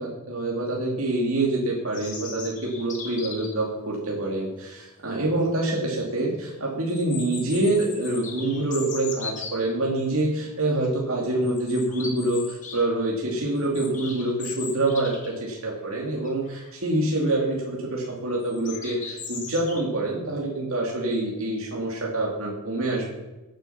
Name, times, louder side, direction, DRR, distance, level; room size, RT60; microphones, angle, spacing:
voice 1, 0.0-15.1 15.4-23.1, right 2 dB, 65° right, -3 dB, 2.8 m, -26 dB
sound 1, 1.9-3.6 5.2-5.3 5.7-5.8 6.9-9.6 10.3-10.5 10.8-11.0 11.4-12.8 13.1-15.4 15.7-15.8 16.2-16.7 17.2-17.6 18.4-19.8, left 5 dB, 35° left, 2.8 m, -38 dB
17.0 x 9.1 x 5.9 m, 1.1 s
head